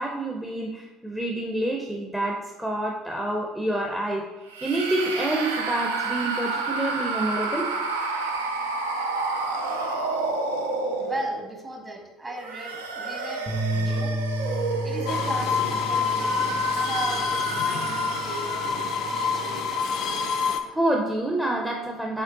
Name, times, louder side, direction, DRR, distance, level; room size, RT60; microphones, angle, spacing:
voice 1, 0.0-4.2 4.6-7.7 20.7-22.2, right 1 dB, 5° right, 0 dB, 0.6 m, -27 dB
sound 1, 4.5-11.6 12.3-18.8, right 3 dB, 80° right, 0.4 m, -30 dB
voice 2, 10.9-14.1 14.8-19.6, right 1 dB, 25° right, 1 dB, 1.1 m, -37 dB
sound 2, 13.5-19.7, right 1 dB, 40° right, 1.4 m, -33 dB
sound 3, 15.1-20.6, left 5 dB, 55° left, 0.3 m, -26 dB
4.4 x 3.2 x 3.7 m, 1.1 s
figure-of-eight pair, 60°, 0 cm